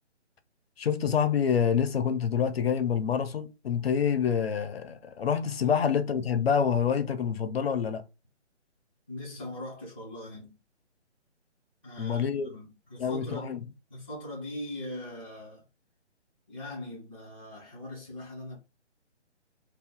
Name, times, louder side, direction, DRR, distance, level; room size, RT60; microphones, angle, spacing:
voice 1, 0.8-8.0 12.0-12.5 13.0-13.6, left 7 dB, 60° left, 0.5 m, -27 dB
voice 2, 9.1-10.6 11.8-13.6 13.9-15.6 16.5-18.6, left 1 dB, 10° right, 0.4 m, -41 dB
2.7 x 2.2 x 3.6 m
figure-of-eight pair, 150°, 35 cm